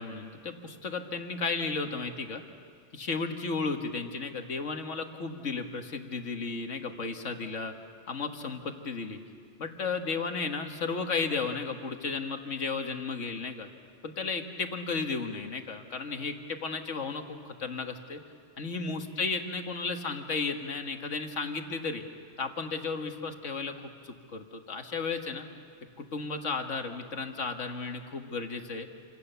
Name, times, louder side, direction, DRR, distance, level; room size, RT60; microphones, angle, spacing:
voice 1, 0.0-2.4 2.9-7.7 8.1-9.2 9.6-13.7 14.0-18.2 18.6-22.0 22.4-23.7 24.0-25.5 26.0-28.9, left 4 dB, 85° left, 5 dB, 2.0 m, -34 dB
28.0 x 26.0 x 6.9 m, 2.2 s
omnidirectional pair, 1.2 m